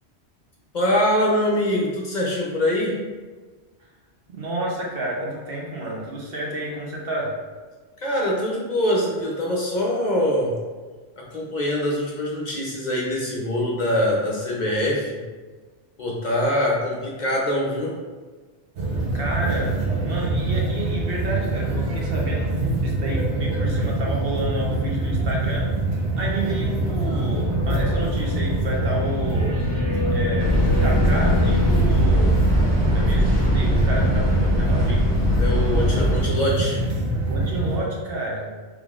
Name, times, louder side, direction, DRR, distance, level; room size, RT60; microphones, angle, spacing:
voice 1, 0.7-3.0 8.0-10.5 11.2-15.2 16.0-17.9 35.4-36.8, left 1 dB, 45° left, -3 dB, 0.7 m, -23 dB
voice 2, 4.3-7.4 16.2-16.4 19.1-19.8 20.0-25.7 26.2-29.6 30.1-32.4 32.8-35.1 35.6-36.0 37.3-38.5, right 1 dB, 60° right, -2 dB, 1.0 m, -30 dB
sound 1, 18.8-37.8, right 2 dB, 85° right, 1.2 m, -25 dB
sound 2, 26.5-36.7, left 4 dB, 40° right, 1.5 m, -30 dB
sound 3, 30.4-36.2, equal, 20° left, 1.0 m, -20 dB
5.1 x 3.4 x 2.4 m, 1.4 s
omnidirectional pair, 1.1 m